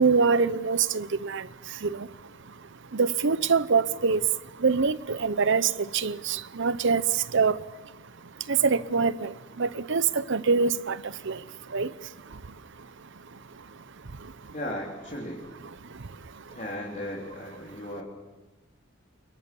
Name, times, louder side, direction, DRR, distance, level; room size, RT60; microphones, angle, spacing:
voice 1, 0.0-14.5 15.8-16.6, right 5 dB, 65° right, 0.8 m, -27 dB
voice 2, 14.5-15.4 16.5-18.0, left 1 dB, 40° left, 3.8 m, -36 dB
28.5 x 23.0 x 7.1 m
head